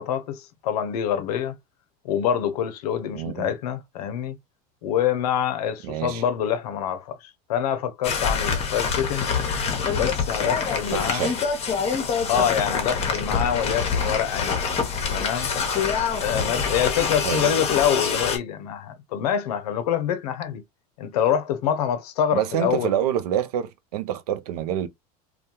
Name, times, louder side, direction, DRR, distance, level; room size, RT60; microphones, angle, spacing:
voice 1, 0.0-1.5 2.0-4.4 4.8-9.3 9.9-11.3 12.3-14.6 15.1-15.5 16.2-20.6 21.0-23.0, left 9 dB, 90° left, 0.6 m, -26 dB
voice 2, 3.1-3.5 5.8-6.2 10.9-11.3 17.2-17.5 22.3-24.9, right 10 dB, 90° right, 0.4 m, -27 dB
sound 1, 8.0-18.4, left 5 dB, 35° left, 0.8 m, -25 dB
2.2 x 2.2 x 2.7 m
supercardioid pair, 105°, 19 cm